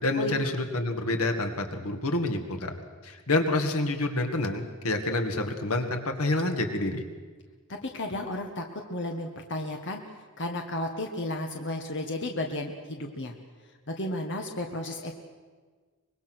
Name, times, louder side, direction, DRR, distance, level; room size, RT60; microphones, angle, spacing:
voice 1, 0.0-2.8 3.0-7.0, left 2 dB, 80° left, 5 dB, 2.1 m, -28 dB
voice 2, 7.7-10.0 10.4-13.3 13.9-15.1, left 1 dB, 55° left, 3 dB, 1.6 m, -33 dB
24.0 x 21.5 x 6.3 m, 1.4 s
head